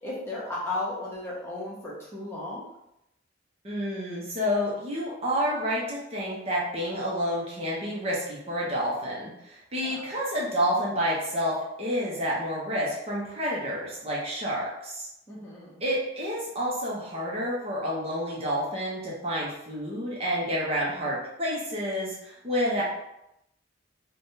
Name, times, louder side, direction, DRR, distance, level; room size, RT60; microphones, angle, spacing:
voice 1, 0.0-2.6 9.8-10.1 15.3-15.8, left 2 dB, 15° left, -7 dB, 0.8 m, -35 dB
voice 2, 3.6-15.1 15.8-22.8, equal, 30° right, -5 dB, 0.7 m, -29 dB
3.3 x 2.2 x 2.7 m, 0.83 s
head